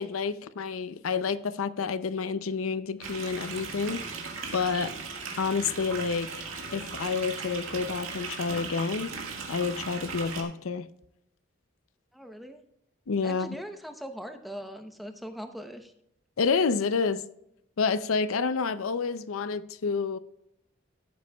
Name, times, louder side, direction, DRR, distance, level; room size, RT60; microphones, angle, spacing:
voice 1, 0.0-4.3 4.5-5.0 5.4-6.3 6.7-9.1 9.5-10.9 13.1-13.5 16.4-17.3 17.8-20.2, left 5 dB, 80° left, 0.6 m, -29 dB
sound 1, 3.0-10.4, right 4 dB, 80° right, 1.9 m, -37 dB
voice 2, 12.1-12.6 13.2-15.9, equal, ahead, 0.8 m, -41 dB
14.5 x 7.8 x 2.3 m
head